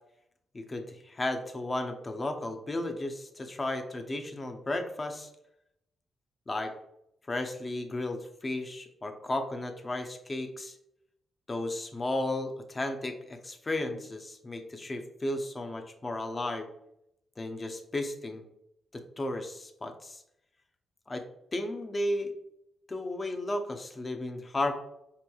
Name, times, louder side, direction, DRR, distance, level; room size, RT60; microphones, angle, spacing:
voice 1, 0.5-5.3 6.5-6.7 7.3-10.7 11.5-16.7 17.4-18.4 18.9-20.2 21.1-21.2 21.5-22.3 22.9-24.7, left 1 dB, 30° left, 6 dB, 0.5 m, -34 dB
4.3 x 2.9 x 2.3 m, 0.79 s
cardioid pair, 75°, 0 cm